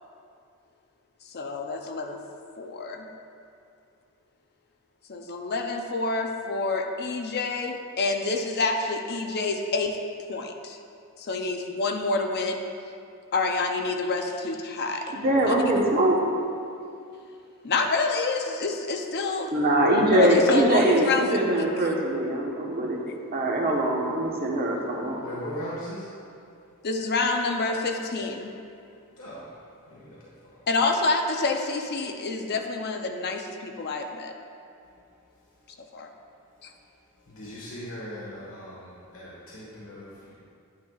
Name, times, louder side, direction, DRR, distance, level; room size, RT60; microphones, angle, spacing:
voice 1, 1.3-2.2 2.6-3.1 5.1-10.0 10.3-10.8 11.2-12.6 13.3-15.1 15.5-15.6 17.6-19.5 20.1-21.4 21.8-21.9 26.8-28.5 30.7-34.3 36.0-36.1 36.6-36.7, left 3 dB, 50° left, 4 dB, 0.6 m, -28 dB
voice 2, 15.1-16.2 19.5-23.0 23.3-25.2, right 1 dB, 45° right, -2 dB, 1.1 m, -22 dB
voice 3, 25.2-26.1 29.2-29.4 29.9-30.2 30.5-30.6 37.3-40.3, equal, 65° left, -7 dB, 1.5 m, -39 dB
9.5 x 9.3 x 2.4 m, 2.4 s
head